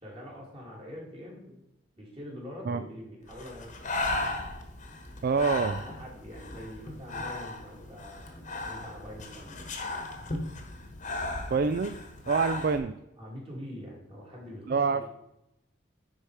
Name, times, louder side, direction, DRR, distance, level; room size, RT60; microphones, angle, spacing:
voice 1, 0.0-1.6 2.0-4.3 5.8-9.7 13.2-15.2, equal, 30° right, -3 dB, 2.5 m, -44 dB
Breathing, 3.3-12.8, left 2 dB, 35° left, 1.1 m, -36 dB
voice 2, 5.2-5.8 11.5-11.9 12.3-13.0 14.7-15.0, right 5 dB, 50° right, 10 dB, 0.3 m, -26 dB
10.0 x 4.5 x 4.8 m, 0.89 s
head